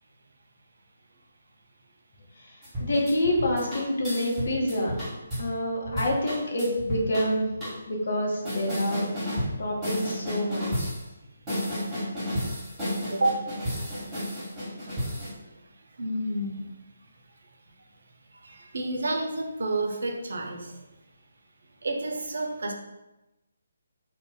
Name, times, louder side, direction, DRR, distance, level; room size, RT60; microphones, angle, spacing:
voice 1, 2.4-5.0 5.4-7.5 7.9-9.1 9.6-10.9, left 1 dB, 55° left, -2 dB, 0.8 m, -27 dB
sound 1, 2.6-5.5 5.8-7.3 7.6-7.7 8.4-9.6 9.8-11.0 11.5-15.3, equal, 10° right, 1.2 m, -32 dB
voice 2, 13.1-13.4 16.0-16.6 18.4-20.7 21.8-22.7, right 2 dB, 55° right, 3 dB, 0.4 m, -29 dB
2.5 x 2.1 x 3.8 m, 1.0 s
figure-of-eight pair, 140°, 0 cm